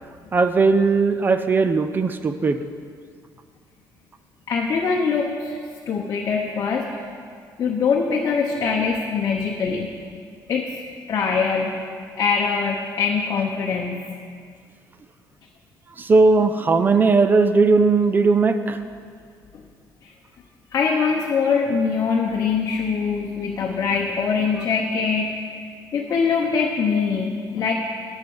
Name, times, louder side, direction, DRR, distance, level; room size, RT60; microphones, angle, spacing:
voice 1, 0.3-2.6 16.0-18.8, right 4 dB, 25° right, 10 dB, 0.4 m, -18 dB
voice 2, 4.5-5.6 5.9-6.9 7.6-9.9 10.5-10.7 11.1-11.7 12.2-14.0 20.7-27.7, left 5 dB, 40° left, -1 dB, 0.9 m, -23 dB
9.1 x 7.9 x 7.1 m, 2.1 s
cardioid pair, 150°, 8 cm